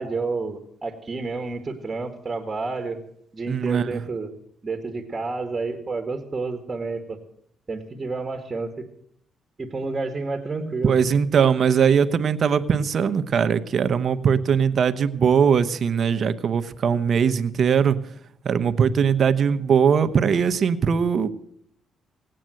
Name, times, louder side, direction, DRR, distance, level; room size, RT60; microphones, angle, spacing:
voice 1, 0.0-3.0 3.3-4.3 4.6-7.2 7.7-8.7 9.6-11.0, right 3 dB, 25° right, 6 dB, 1.9 m, -30 dB
voice 2, 3.5-4.0 10.8-18.0 18.4-21.3, right 7 dB, 55° right, 11 dB, 1.0 m, -20 dB
18.0 x 9.0 x 7.8 m, 0.69 s
cardioid pair, 90°, 0 cm